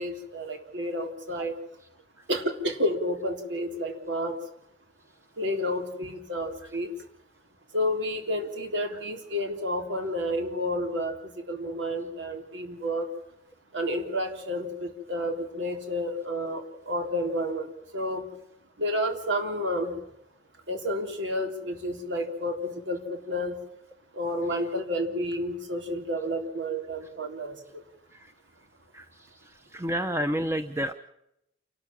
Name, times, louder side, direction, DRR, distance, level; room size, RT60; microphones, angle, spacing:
voice 1, 0.0-1.5 2.3-4.4 5.4-6.9 7.7-13.1 13.7-18.2 18.8-19.9 20.7-23.6 24.1-27.8, equal, 85° right, 5 dB, 3.8 m, -30 dB
voice 2, 29.4-30.9, equal, 15° right, 8 dB, 0.8 m, -30 dB
28.5 x 13.5 x 7.4 m, 0.81 s
head